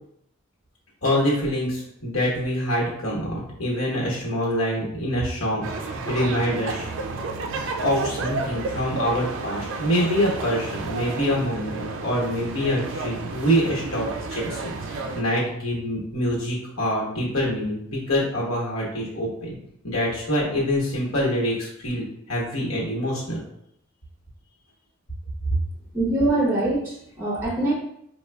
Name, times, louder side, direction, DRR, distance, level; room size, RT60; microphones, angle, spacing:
voice 1, 1.0-6.9 7.8-19.6 19.8-23.4, equal, 80° left, -4 dB, 1.2 m, -25 dB
sound 1, 5.6-15.2, right 3 dB, 65° right, 0.4 m, -31 dB
voice 2, 25.9-27.7, right 2 dB, 10° right, -2 dB, 0.6 m, -23 dB
4.9 x 2.3 x 2.2 m, 0.72 s
head